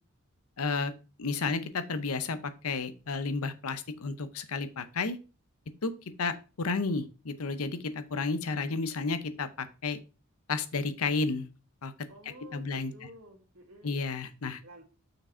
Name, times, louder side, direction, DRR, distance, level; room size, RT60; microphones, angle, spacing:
voice 1, 0.6-0.9 1.2-5.2 5.8-5.9 6.2-10.0 10.5-11.5 11.8-11.9 12.5-12.9 13.8-14.6, left 4 dB, 75° left, 12 dB, 0.7 m, -32 dB
voice 2, 12.1-14.0 14.6-14.8, equal, 70° right, 2 dB, 2.1 m, -51 dB
6.2 x 4.9 x 4.3 m, 0.33 s
head